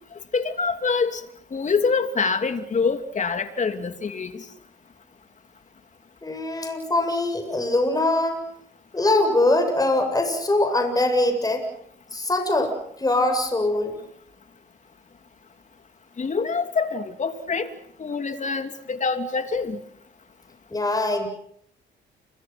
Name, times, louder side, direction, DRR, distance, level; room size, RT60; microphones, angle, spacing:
voice 1, 0.3-1.2 1.5-4.4 16.2-17.7 18.0-19.8, left 5 dB, 40° left, 7 dB, 2.9 m, -25 dB
voice 2, 6.2-8.4 8.9-11.6 12.1-14.0 20.7-21.3, left 2 dB, 20° left, 5 dB, 7.6 m, -22 dB
30.0 x 26.0 x 6.0 m, 0.70 s
cardioid pair, 90°, 20 cm